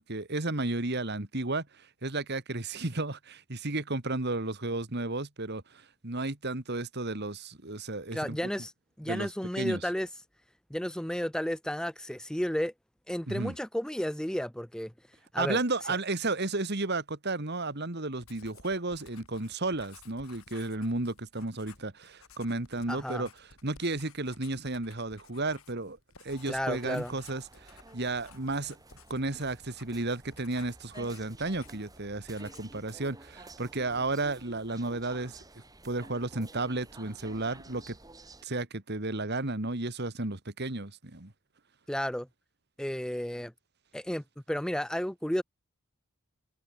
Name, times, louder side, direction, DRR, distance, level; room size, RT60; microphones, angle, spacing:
voice 1, 0.0-8.4 9.1-9.3 9.6-9.8 13.3-13.5 15.4-23.3 23.6-26.0 26.2-28.8 29.1-35.4 35.8-38.0 38.4-41.3, right 2 dB, 50° right, 2.2 m, -33 dB
voice 2, 8.1-8.7 9.0-10.1 10.7-12.7 13.1-14.9 15.3-15.6 15.9-16.0 22.9-23.2 26.5-27.1 41.9-42.3 42.8-43.5 43.9-45.4, equal, 5° left, 0.6 m, -32 dB
Writing, 18.2-32.0 32.3-32.8, left 5 dB, 80° left, 5.0 m, -56 dB
sound 1, 26.3-38.4, right 2 dB, 15° right, 2.1 m, -52 dB
head